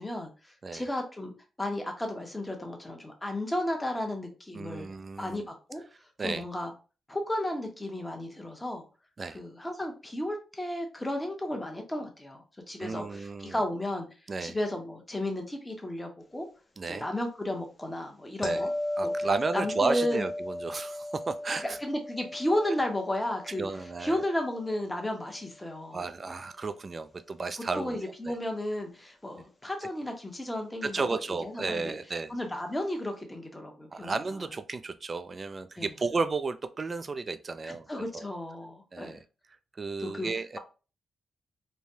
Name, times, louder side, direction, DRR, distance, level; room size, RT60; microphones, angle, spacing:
voice 1, 0.0-1.3 1.6-4.9 5.2-5.8 6.2-6.7 7.1-8.8 9.3-14.1 14.4-16.5 16.9-18.7 19.0-19.1 19.5-20.2 21.6-23.7 24.0-26.0 27.7-31.9 32.3-34.2 35.8-35.9 37.6-39.2 40.0-40.3, left 1 dB, 15° left, 3 dB, 0.9 m, -33 dB
voice 2, 4.5-5.5 6.2-6.4 9.2-9.4 12.8-13.6 14.3-14.6 16.8-17.1 18.4-18.7 19.0-21.8 23.6-24.2 25.9-28.4 30.8-32.3 33.9-37.9 38.1-38.3 38.9-39.2 39.8-40.6, right 4 dB, 40° right, 11 dB, 0.4 m, -33 dB
sound 1, 18.4-25.4 30.7-30.8, left 1 dB, 35° left, 0.5 m, -36 dB
3.2 x 2.2 x 2.6 m, 0.33 s
supercardioid pair, 55°, 0 cm